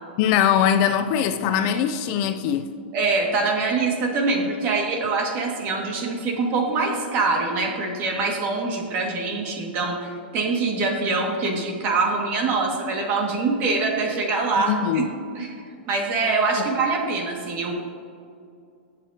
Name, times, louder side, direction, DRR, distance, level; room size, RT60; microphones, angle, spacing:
voice 1, 0.2-2.7 14.7-15.1, left 9 dB, 40° left, 0.5 m, -21 dB
voice 2, 2.9-15.0 15.4-15.6 15.9-17.7, right 3 dB, 35° right, 2.0 m, -24 dB
19.5 x 7.6 x 2.9 m
hypercardioid pair, 145°, 6 cm